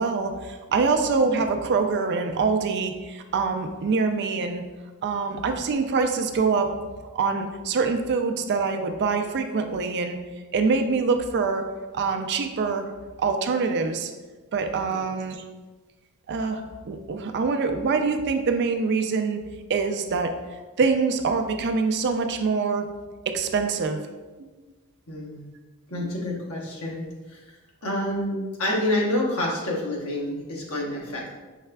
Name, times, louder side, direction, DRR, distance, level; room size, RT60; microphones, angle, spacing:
voice 1, 0.0-4.6 5.0-6.8 7.1-10.2 10.5-11.6 11.9-12.9 13.2-14.1 14.5-15.4 16.3-19.4 19.7-22.9 23.3-24.0 25.9-26.1, right 4 dB, 50° right, 6 dB, 0.4 m, -25 dB
voice 2, 25.1-25.5 25.9-27.4 27.8-31.4, left 1 dB, 70° left, -3 dB, 1.0 m, -28 dB
5.6 x 3.3 x 2.2 m, 1.3 s
head